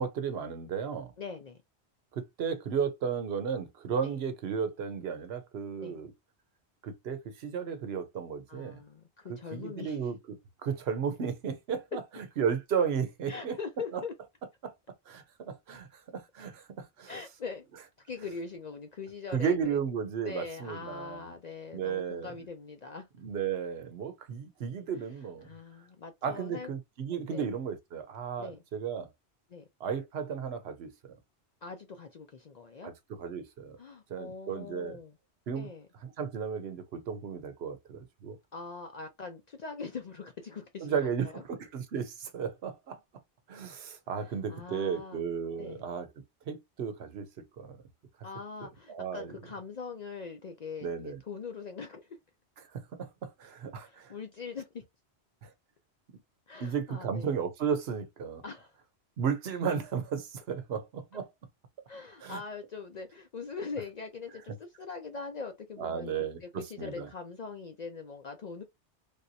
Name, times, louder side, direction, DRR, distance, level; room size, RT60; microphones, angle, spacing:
voice 1, 0.0-1.1 2.1-6.1 6.8-8.8 9.5-10.2 10.6-13.5 14.6-14.7 15.1-17.1 19.3-21.2 21.7-22.3 23.2-25.5 26.2-29.1 29.8-30.9 32.8-33.8 34.1-35.0 35.5-35.7 36.0-38.4 40.8-43.0 43.5-46.1 46.5-47.8 48.9-49.4 50.8-51.2 52.7-54.1 55.4-55.5 56.6-58.4 59.2-61.3 62.2-62.4 65.8-67.1, right 7 dB, 70° right, 0.9 m, -34 dB
voice 2, 1.2-1.6 4.0-4.2 5.8-6.0 8.5-10.1 13.3-14.1 17.1-17.6 18.0-19.8 20.2-23.1 25.4-26.8 27.3-27.5 28.4-28.6 29.5-29.6 31.6-32.9 33.8-35.2 35.5-35.9 38.5-41.4 44.1-45.2 45.6-45.8 48.2-52.2 53.8-54.8 56.5-57.4 58.4-58.8 61.9-66.1 66.4-68.6, left 4 dB, 55° left, 0.5 m, -42 dB
3.4 x 2.7 x 2.6 m
omnidirectional pair, 1.1 m